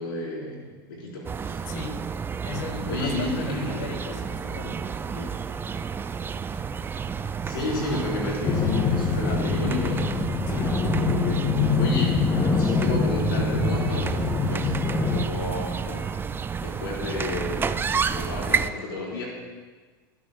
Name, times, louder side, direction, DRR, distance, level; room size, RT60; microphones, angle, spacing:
voice 1, 0.0-1.7 2.9-4.2 4.6-5.3 7.4-10.2 10.8-14.8 15.1-16.1 16.6-19.3, left 2 dB, 85° left, -3 dB, 3.9 m, -32 dB
sound 1, 1.2-18.7, right 6 dB, 20° right, 0.4 m, -30 dB
voice 2, 1.7-2.0 2.4-4.8 9.1-9.5 10.5-10.7, left 5 dB, 70° left, 6 dB, 1.7 m, -37 dB
sound 2, 8.4-15.2, left 4 dB, 25° left, 1.0 m, -24 dB
18.0 x 12.0 x 2.2 m, 1.4 s
supercardioid pair, 105°, 12 cm